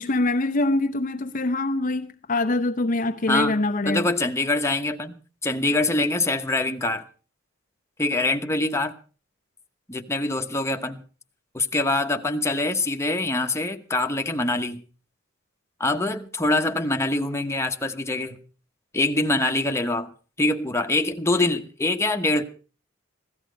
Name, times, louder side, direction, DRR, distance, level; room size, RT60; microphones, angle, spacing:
voice 1, 0.0-4.1, left 2 dB, 40° left, 0.7 m, -24 dB
voice 2, 3.8-5.1 5.4-7.0 8.0-8.9 9.9-11.0 11.5-14.8 15.8-18.4 18.9-20.1 20.4-22.4, left 2 dB, 15° left, 1.1 m, -24 dB
16.5 x 13.5 x 5.2 m
head